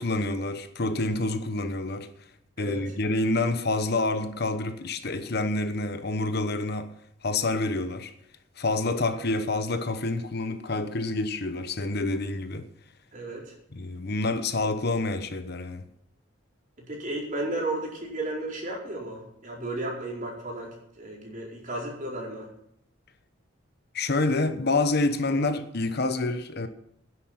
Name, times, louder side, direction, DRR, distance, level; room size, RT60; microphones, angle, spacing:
voice 1, 0.0-2.1 2.6-6.9 7.2-8.1 8.6-12.7 13.7-15.8 23.9-26.7, left 2 dB, 55° left, 1.0 m, -27 dB
voice 2, 13.1-13.5 16.9-22.5, right 2 dB, 40° right, 4.5 m, -34 dB
10.5 x 8.1 x 9.4 m
head